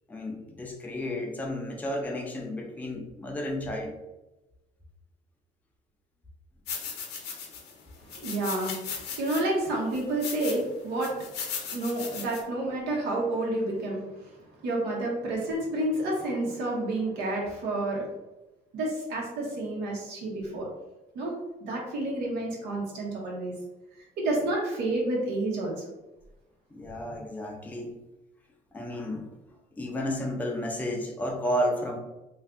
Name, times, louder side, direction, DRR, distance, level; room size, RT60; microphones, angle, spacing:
voice 1, 0.1-3.9 21.8-21.9 26.7-27.9 28.7-29.3 29.7-32.0, left 1 dB, 10° left, 1 dB, 0.5 m, -32 dB
sound 1, 6.7-7.7 8.1-9.4 9.9-10.6 11.0-12.4, left 6 dB, 80° left, 0.7 m, -37 dB
voice 2, 8.1-11.2 11.7-18.1 18.7-20.7 21.1-23.5 24.2-25.9, right 2 dB, 80° right, -2 dB, 1.0 m, -30 dB
2.5 x 2.5 x 3.4 m, 1.0 s
cardioid pair, 110°, 17 cm